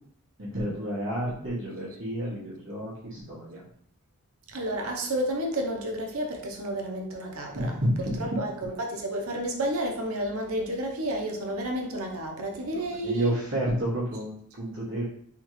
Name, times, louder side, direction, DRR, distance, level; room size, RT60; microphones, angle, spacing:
voice 1, 0.4-3.6 7.5-8.4 12.7-15.0, right 1 dB, 60° right, -8 dB, 1.3 m, -30 dB
voice 2, 4.5-7.8 8.2-13.3, right 1 dB, 75° right, 1 dB, 0.8 m, -31 dB
3.6 x 3.5 x 3.1 m, 0.64 s
head